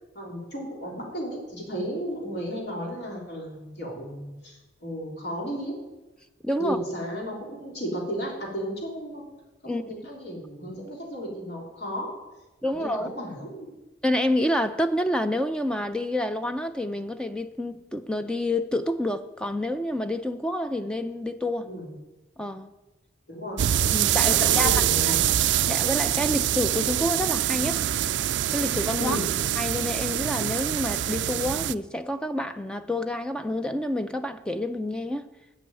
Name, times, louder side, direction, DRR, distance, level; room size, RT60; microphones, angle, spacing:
voice 1, 0.1-5.8 6.6-9.2 9.6-12.1 12.7-13.7 21.6-21.9 23.3-23.6 24.2-25.2 29.0-29.2, equal, 65° left, 3.5 m, -34 dB
voice 2, 6.4-6.8 9.7-9.8 12.6-13.1 14.0-21.7 22.4-22.7 23.9-25.1 25.7-27.8 28.5-29.2 29.6-35.3, left 1 dB, 5° left, 0.4 m, -28 dB
sound 1, 23.6-31.7, right 11 dB, 75° right, 0.4 m, -24 dB
11.5 x 6.3 x 9.1 m
head